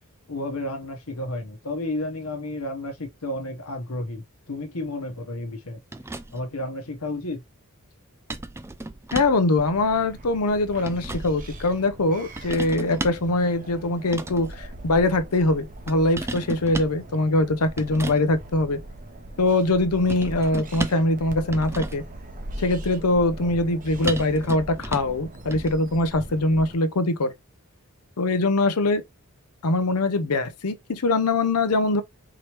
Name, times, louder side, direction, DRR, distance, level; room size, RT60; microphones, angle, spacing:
voice 1, 0.3-5.8 6.3-7.4, left 1 dB, 70° left, 1.1 m, -32 dB
sound 1, 5.9-6.5 8.3-9.5 10.5-11.3 12.4-13.3 14.0-14.5 15.9-17.0 17.8-18.2 20.1-21.1 21.5-22.1 24.0-25.2 25.5-25.7, right 2 dB, 10° right, 0.3 m, -34 dB
voice 2, 9.1-18.8 19.4-22.0 22.6-27.3 28.2-29.0 29.6-32.0, left 2 dB, 90° left, 0.7 m, -22 dB
sound 2, 9.6-26.7, right 1 dB, 35° right, 0.8 m, -40 dB
4.8 x 3.1 x 3.0 m
head